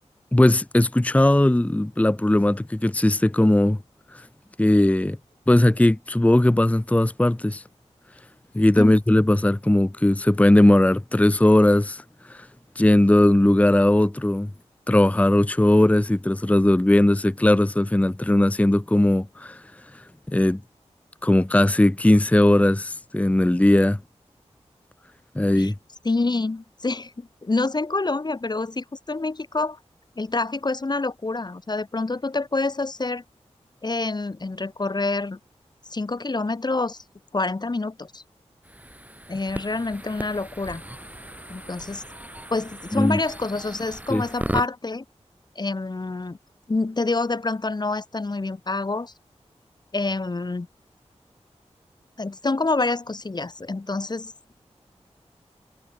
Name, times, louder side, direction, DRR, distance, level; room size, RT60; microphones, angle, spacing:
voice 1, 0.3-3.8 4.1-4.2 4.6-5.2 5.5-7.6 8.5-12.0 12.3-12.5 12.8-14.5 14.9-19.6 20.3-20.6 21.2-24.0 25.3-25.7 42.9-43.2 44.1-44.2, left 1 dB, 10° left, 0.8 m, -18 dB
voice 2, 26.0-29.8 30.2-33.2 33.8-35.4 35.9-37.0 37.3-38.2 39.3-40.8 41.5-42.0 42.5-45.0 45.6-46.4 46.7-49.1 49.9-50.7 52.2-54.3, left 3 dB, 35° left, 1.0 m, -27 dB
sound 1, 38.6-44.7, right 1 dB, 15° right, 6.0 m, -36 dB
wide cardioid pair, 60°, 12 cm